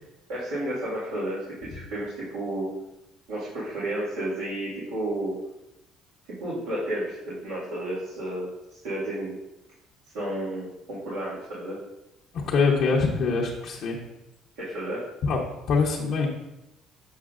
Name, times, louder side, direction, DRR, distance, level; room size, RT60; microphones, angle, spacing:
voice 1, 0.3-2.7 3.3-5.4 6.4-9.3 10.1-11.8 14.6-15.0, right 1 dB, 85° right, -9 dB, 1.9 m, -32 dB
voice 2, 12.3-14.0 15.2-15.4 15.7-16.3, left 4 dB, 60° left, -4 dB, 0.9 m, -24 dB
7.2 x 5.6 x 2.5 m, 0.91 s
supercardioid pair, 85°, 0 cm